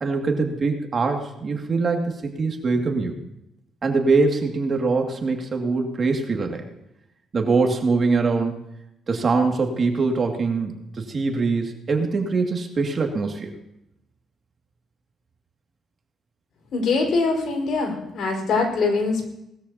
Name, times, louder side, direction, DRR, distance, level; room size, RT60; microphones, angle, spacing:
voice 1, 0.0-3.2 3.8-6.6 7.3-8.6 9.1-13.5, right 4 dB, 40° right, 3 dB, 2.2 m, -23 dB
voice 2, 16.7-19.3, left 4 dB, 70° left, 2 dB, 4.8 m, -23 dB
19.0 x 13.5 x 2.8 m, 0.84 s
cardioid pair, 90°, 0 cm